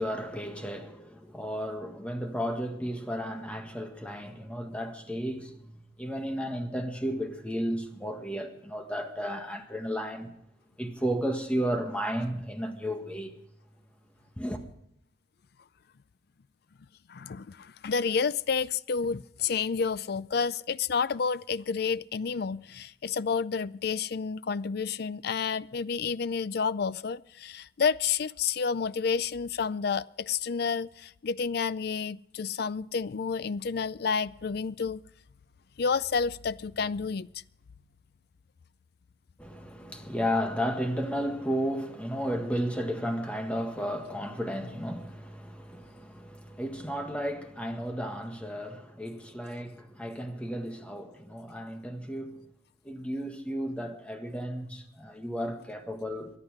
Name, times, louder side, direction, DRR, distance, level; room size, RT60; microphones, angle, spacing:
voice 1, 0.0-10.3 10.8-13.3 14.4-14.6 39.4-52.4 52.8-56.3, equal, 5° left, 1.7 m, -33 dB
voice 2, 17.1-35.0 35.8-37.3, left 5 dB, 60° left, 0.5 m, -30 dB
23.5 x 9.8 x 4.9 m
head